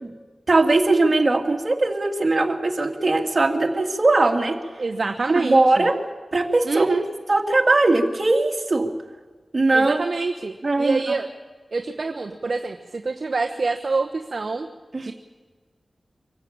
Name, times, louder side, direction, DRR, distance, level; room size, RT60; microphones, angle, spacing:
voice 1, 0.5-4.6 5.4-6.0 6.3-6.9 7.3-8.9 9.5-10.0 10.6-11.0 14.9-15.1, right 2 dB, 45° right, 2 dB, 2.6 m, -20 dB
voice 2, 4.8-5.9 6.6-7.0 9.7-11.3 11.7-14.7 15.0-15.1, right 3 dB, 65° right, 3 dB, 1.1 m, -26 dB
25.0 x 14.5 x 8.7 m, 1.4 s
cardioid pair, 50°, 0 cm